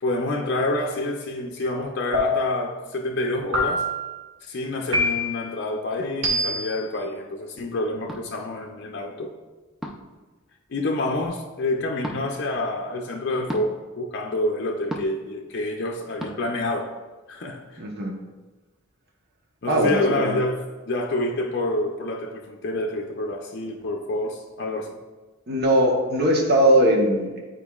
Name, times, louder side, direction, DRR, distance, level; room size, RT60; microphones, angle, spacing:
voice 1, 0.0-3.8 4.4-9.3 10.7-17.0 17.3-17.8 19.6-25.0, left 2 dB, 55° left, 0.5 m, -28 dB
sound 1, 2.1-2.7 3.5-4.1 4.9-5.5 6.2-6.8, left 1 dB, 85° right, 1.2 m, -24 dB
sound 2, 8.1-8.3 9.8-10.1 12.0-12.2 13.5-13.7 14.9-15.2 16.2-16.3, equal, ahead, 0.5 m, -33 dB
voice 2, 17.8-18.1 19.7-20.4 25.5-27.4, right 1 dB, 55° right, 1.0 m, -20 dB
9.0 x 4.4 x 2.4 m
head